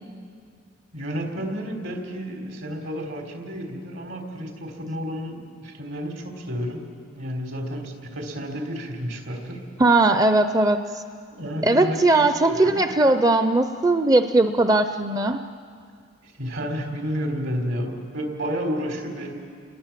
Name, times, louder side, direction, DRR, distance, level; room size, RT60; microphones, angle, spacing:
voice 1, 0.9-9.6 11.3-12.8 16.2-19.3, equal, 70° right, 3 dB, 4.0 m, -31 dB
voice 2, 9.8-10.8 11.6-15.4, right 2 dB, 20° right, 8 dB, 0.6 m, -19 dB
29.5 x 21.5 x 7.5 m, 2.2 s
head